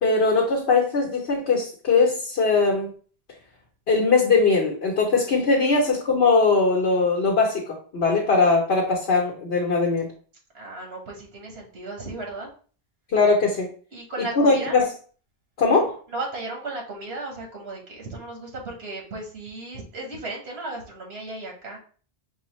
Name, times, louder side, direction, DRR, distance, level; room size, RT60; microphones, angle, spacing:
voice 1, 0.0-2.9 3.9-10.1 13.1-13.7 14.4-14.9 15.6-16.0, left 4 dB, 75° left, -3 dB, 1.2 m, -20 dB
voice 2, 10.5-12.5 13.9-14.8 16.1-21.8, right 2 dB, 85° right, 1 dB, 1.4 m, -35 dB
5.5 x 2.4 x 3.0 m, 0.42 s
omnidirectional pair, 1.0 m